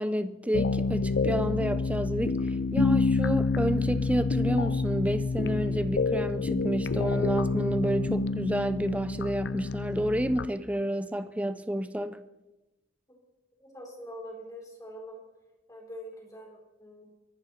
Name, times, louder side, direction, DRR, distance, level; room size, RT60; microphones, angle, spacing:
voice 1, 0.0-12.2, right 1 dB, 5° right, 0.5 m, -30 dB
sound 1, 0.5-10.5, left 4 dB, 65° left, 0.5 m, -28 dB
voice 2, 13.6-15.2 15.7-17.0, equal, 20° left, 4.1 m, -44 dB
24.0 x 11.5 x 4.3 m
head